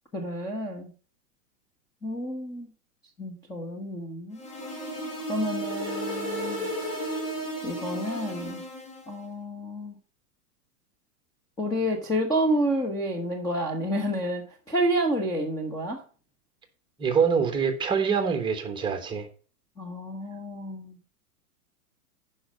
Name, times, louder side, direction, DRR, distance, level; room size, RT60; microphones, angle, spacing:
voice 1, 0.1-0.9 2.0-2.7 3.2-4.4 5.3-6.7 7.6-8.6 9.1-10.0 11.6-16.0 19.8-21.0, equal, 10° left, 0 dB, 0.8 m, -29 dB
sound 1, 4.3-9.1, right 1 dB, 35° left, 2.9 m, -33 dB
voice 2, 17.0-19.3, right 6 dB, 10° right, 6 dB, 1.2 m, -25 dB
10.0 x 5.5 x 5.2 m, 0.39 s
hypercardioid pair, 140°, 47 cm